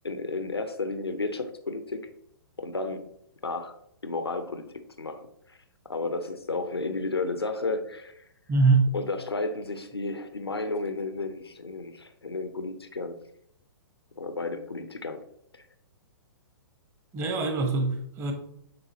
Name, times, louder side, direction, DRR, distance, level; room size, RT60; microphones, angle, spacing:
voice 1, 0.0-2.1 2.6-3.1 3.4-3.8 4.0-5.6 5.9-8.3 8.9-13.2 14.2-15.2 15.5-15.7, left 3 dB, 85° left, 0.7 m, -32 dB
voice 2, 8.5-8.9 17.1-18.3, right 3 dB, 20° right, 1.0 m, -23 dB
9.5 x 3.9 x 2.8 m
figure-of-eight pair, 115°, 13 cm